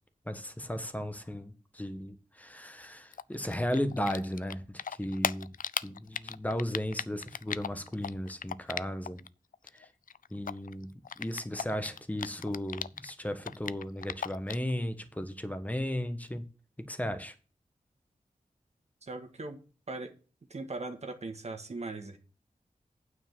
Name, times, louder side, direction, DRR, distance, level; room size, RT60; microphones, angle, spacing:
voice 1, 0.3-5.5 5.8-9.2 9.7-9.9 10.3-16.5 16.8-17.3, left 1 dB, 10° left, 1.3 m, -35 dB
Typing, 3.1-9.3 9.5-13.1 13.4-14.7, left 7 dB, 75° left, 0.4 m, -36 dB
voice 2, 19.0-19.6 19.9-20.1 20.5-22.2, right 3 dB, 50° right, 1.8 m, -39 dB
9.1 x 5.0 x 7.4 m
wide cardioid pair, 100°, 14 cm